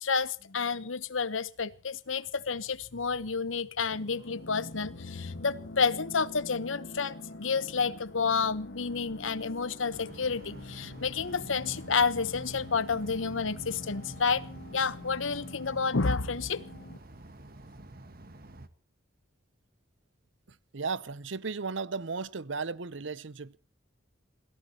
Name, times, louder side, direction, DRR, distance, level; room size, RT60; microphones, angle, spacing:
voice 1, 0.0-14.4 14.7-16.6, left 5 dB, 85° left, 1.0 m, -30 dB
sound 1, 3.9-17.0, left 1 dB, 65° left, 1.5 m, -45 dB
sound 2, 9.9-18.7, right 1 dB, 50° right, 1.4 m, -49 dB
voice 2, 20.7-23.6, right 4 dB, 70° right, 0.8 m, -35 dB
27.5 x 17.5 x 2.9 m
head